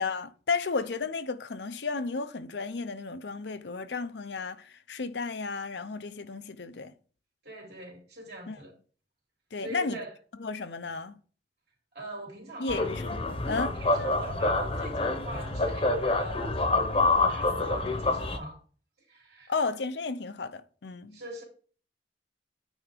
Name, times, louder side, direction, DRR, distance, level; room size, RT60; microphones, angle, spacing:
voice 1, 0.0-6.9 8.5-8.6 9.5-10.0 10.4-11.2 12.6-13.7 19.5-21.2, left 4 dB, 75° left, 0.7 m, -33 dB
voice 2, 7.4-8.7 9.6-10.1 11.9-12.8 13.8-18.6 19.1-19.5 21.1-21.4, right 1 dB, 65° right, 3.1 m, -42 dB
sound 1, 12.7-18.4, left 2 dB, 30° left, 0.9 m, -27 dB
9.2 x 3.5 x 5.0 m
head